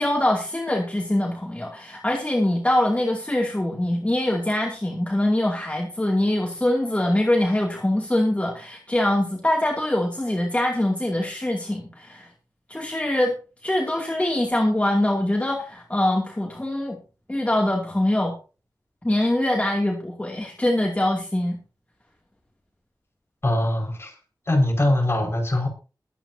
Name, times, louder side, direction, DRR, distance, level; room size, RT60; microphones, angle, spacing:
voice 1, 0.0-12.3 12.7-13.4 13.6-17.0 17.3-18.3 19.0-21.6, left 1 dB, 20° left, 0 dB, 2.6 m, -23 dB
voice 2, 23.4-24.1 24.5-25.7, left 1 dB, 35° left, 1 dB, 5.3 m, -22 dB
22.0 x 9.1 x 2.8 m, 0.34 s
wide cardioid pair, 90°, 7 cm